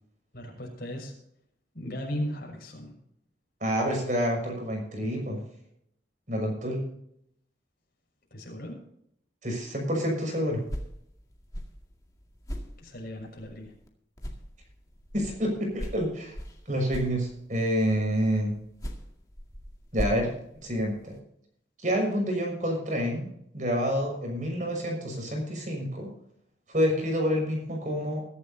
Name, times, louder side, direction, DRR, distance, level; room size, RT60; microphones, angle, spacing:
voice 1, 0.3-1.1 1.7-2.9 8.3-8.8 12.8-13.7, equal, 55° left, 0 dB, 6.2 m, -36 dB
voice 2, 3.6-5.4 6.3-6.8 9.4-10.6 15.1-16.3 16.7-18.5 19.9-20.3 20.6-21.1 21.8-23.3 23.5-26.1 26.7-28.2, equal, 40° right, 1 dB, 6.0 m, -28 dB
sound 1, 10.5-13.9 14.2-17.7 18.5-21.2, equal, 20° left, 2.0 m, -40 dB
22.0 x 11.0 x 2.8 m, 0.73 s
head